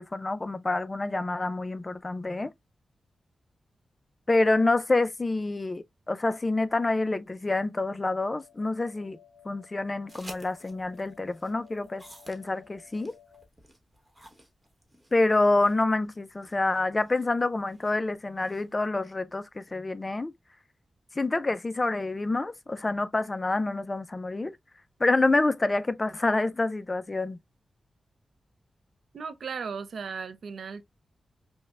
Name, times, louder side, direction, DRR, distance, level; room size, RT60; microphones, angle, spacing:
voice 1, 0.0-2.5 4.3-9.2 9.4-13.2 15.1-20.3 21.2-24.5 25.0-27.4, left 2 dB, 30° left, 0.4 m, -27 dB
sound 1, 8.1-13.5, left 8 dB, 5° left, 0.8 m, -57 dB
sound 2, 10.1-18.9, right 1 dB, 15° right, 1.1 m, -53 dB
voice 2, 29.1-30.8, right 5 dB, 85° right, 0.5 m, -36 dB
5.2 x 2.1 x 2.3 m
wide cardioid pair, 95°, 0 cm